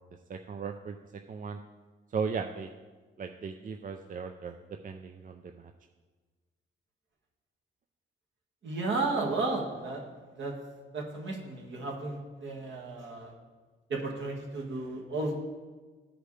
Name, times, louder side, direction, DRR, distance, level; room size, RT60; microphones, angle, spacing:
voice 1, 0.3-1.0 1.3-1.6 2.1-2.7 3.2-4.6 4.8-5.7, right 5 dB, 40° right, 5 dB, 0.5 m, -36 dB
voice 2, 8.6-10.0 10.4-10.5 10.9-13.3 13.9-15.4, right 3 dB, 65° right, -1 dB, 1.9 m, -33 dB
14.0 x 4.9 x 3.3 m, 1.4 s
cardioid pair, 80°, 21 cm